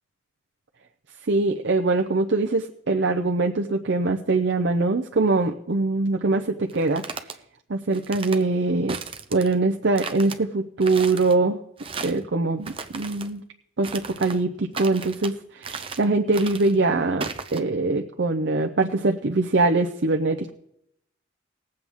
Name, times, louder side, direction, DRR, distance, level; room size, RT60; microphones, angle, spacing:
voice 1, 1.3-7.0 7.7-9.0 9.3-11.6 12.0-13.4 13.8-20.5, right 3 dB, 65° right, 3 dB, 0.7 m, -23 dB
sound 1, 6.7-7.4 7.9-8.4 8.9-9.6 10.0-10.4 10.8-11.3 11.8-12.2 12.6-13.3 13.8-14.4 14.7-15.3 15.6-16.1 16.3-16.7 17.2-17.6, right 4 dB, 30° right, 0.7 m, -35 dB
20.0 x 7.8 x 3.5 m, 0.75 s
head